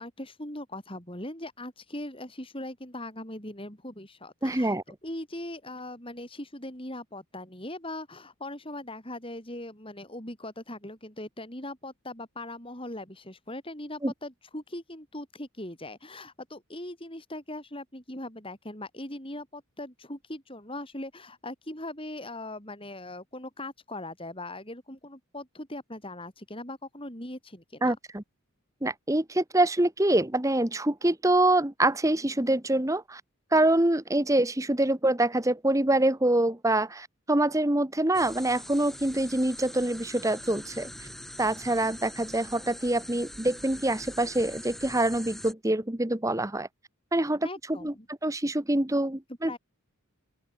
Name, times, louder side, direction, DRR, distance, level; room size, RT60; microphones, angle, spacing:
voice 1, 0.0-4.8 5.0-28.0 47.4-48.1 49.5-49.6, left 1 dB, 25° left, 7.5 m, -40 dB
voice 2, 4.4-4.8 14.0-14.1 27.8-28.2 28.8-33.2 33.5-40.9 41.4-46.7 47.1-49.6, right 1 dB, 15° right, 1.1 m, -25 dB
sound 1, 38.1-45.5, equal, ahead, 2.2 m, -44 dB
open air
head